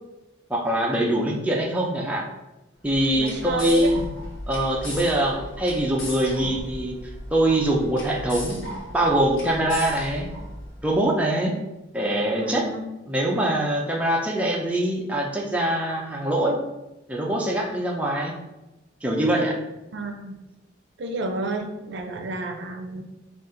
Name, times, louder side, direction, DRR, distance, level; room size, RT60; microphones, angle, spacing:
voice 1, 0.5-2.3 2.8-4.1 4.5-7.0 7.3-10.3 10.8-11.5 11.9-12.7 13.1-16.6 17.1-18.3 19.0-19.6, right 1 dB, 5° right, -2 dB, 0.4 m, -23 dB
sound 1, 2.8-10.9, left 1 dB, 65° left, 1.0 m, -37 dB
voice 2, 3.1-3.9 12.4-12.9 19.9-20.4 21.0-23.0, right 2 dB, 55° right, 4 dB, 0.5 m, -30 dB
3.9 x 2.4 x 3.8 m, 0.99 s
head